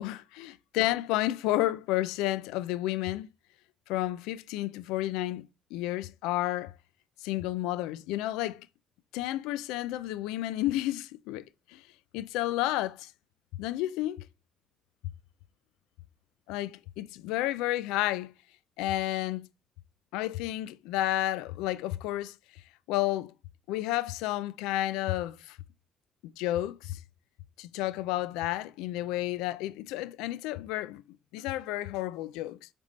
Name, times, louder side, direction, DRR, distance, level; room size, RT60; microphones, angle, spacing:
voice 1, 0.0-3.3 3.9-5.4 5.7-6.7 7.2-8.7 9.1-11.8 12.1-13.1 13.6-14.3 16.5-18.3 18.8-19.5 20.1-22.4 22.9-23.3 23.7-25.6 26.4-27.0 27.6-31.0 31.3-32.7, left 15 dB, 85° left, 0.5 m, -31 dB
8.0 x 3.6 x 4.1 m
supercardioid pair, 60°, 0 cm